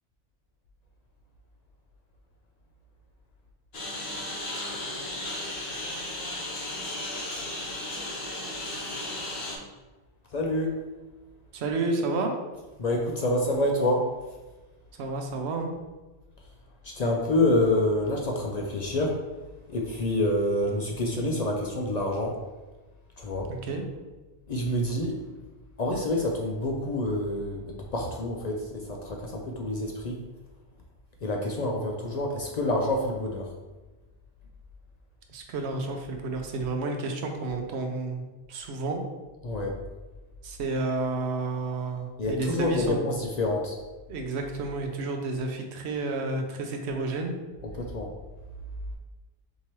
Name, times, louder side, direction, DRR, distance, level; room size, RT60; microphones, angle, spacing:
Engine, 3.7-9.6, left 1 dB, 70° left, 1.0 m, -35 dB
voice 1, 10.3-10.8 12.8-14.0 16.8-19.2 19.7-22.3 23.2-23.5 24.5-25.2 25.8-30.2 31.2-33.5 39.4-39.7 42.2-43.8 47.8-48.1, left 1 dB, 55° left, 0 dB, 0.5 m, -27 dB
voice 2, 11.5-12.3 15.0-15.7 23.5-23.8 35.3-38.2 38.5-39.0 40.4-43.0 44.1-47.3, right 3 dB, 85° right, 4 dB, 0.9 m, -30 dB
4.6 x 2.8 x 2.9 m, 1.2 s
omnidirectional pair, 1.1 m